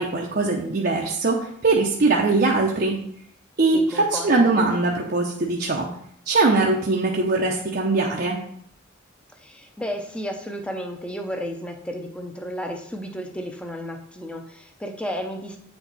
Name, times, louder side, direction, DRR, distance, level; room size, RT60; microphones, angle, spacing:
voice 1, 0.0-3.0 3.6-5.9 6.3-8.4, right 3 dB, 50° right, -2 dB, 0.7 m, -21 dB
voice 2, 3.7-4.5 9.4-15.6, equal, 5° left, 4 dB, 0.7 m, -33 dB
8.4 x 4.5 x 4.1 m, 0.70 s
head